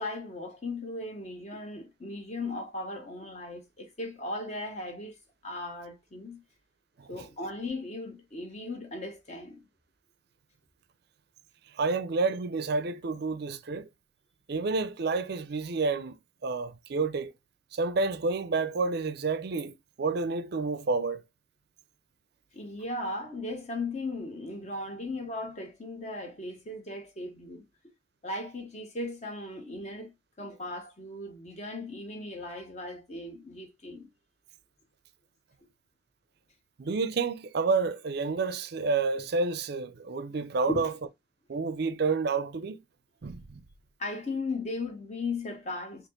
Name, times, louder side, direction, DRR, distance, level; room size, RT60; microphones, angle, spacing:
voice 1, 0.0-5.2 5.4-6.4 7.1-9.6 22.5-27.6 28.2-34.1 40.7-40.8 44.0-46.1, left 2 dB, 35° left, 1.0 m, -37 dB
voice 2, 11.7-13.9 14.5-16.2 16.4-17.3 17.7-21.2 36.8-40.9 41.5-42.8 43.2-43.6, right 4 dB, 55° right, 0.5 m, -29 dB
4.2 x 2.9 x 3.0 m
head